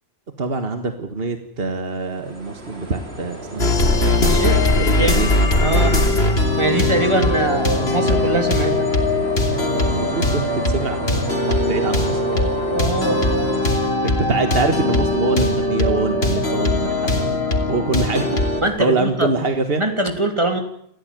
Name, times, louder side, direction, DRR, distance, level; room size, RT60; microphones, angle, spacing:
voice 1, 0.4-3.8 4.8-5.3 5.7-5.9 7.1-7.2 9.7-11.0 11.4-12.5 14.0-17.4 17.7-18.3 18.8-19.8, right 3 dB, 65° right, 6 dB, 1.9 m, -24 dB
sound 1, 2.0-13.6, equal, 85° right, 3.8 m, -32 dB
sound 2, 3.6-18.6, left 2 dB, 90° left, 3.3 m, -20 dB
voice 2, 4.1-4.6 4.9-5.2 5.6-6.0 6.6-8.9 12.7-13.2 18.6-19.3 19.7-20.6, right 1 dB, 30° right, 5 dB, 3.1 m, -22 dB
27.5 x 15.0 x 9.2 m, 0.73 s
omnidirectional pair, 1.0 m